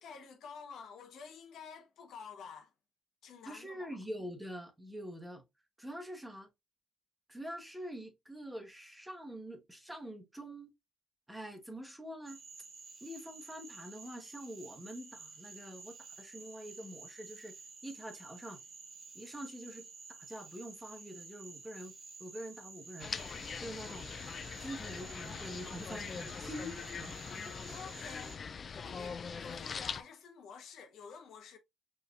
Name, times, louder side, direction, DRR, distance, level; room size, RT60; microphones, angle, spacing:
voice 1, 0.0-2.7 3.2-3.9 27.7-28.3 28.7-31.6, left 6 dB, 75° left, 1.0 m, -50 dB
voice 2, 3.4-5.4 5.8-6.5 7.3-10.7 11.3-12.4 13.0-17.6 17.8-18.6 19.1-21.9 22.2-23.1 23.6-27.1 27.4-28.3, equal, 5° right, 1.1 m, -46 dB
Cricket / Frog, 12.3-28.4, right 4 dB, 45° right, 1.2 m, -52 dB
sound 1, 23.0-30.0, left 6 dB, 45° left, 0.3 m, -42 dB
4.7 x 3.2 x 2.5 m
cardioid pair, 90°, 0 cm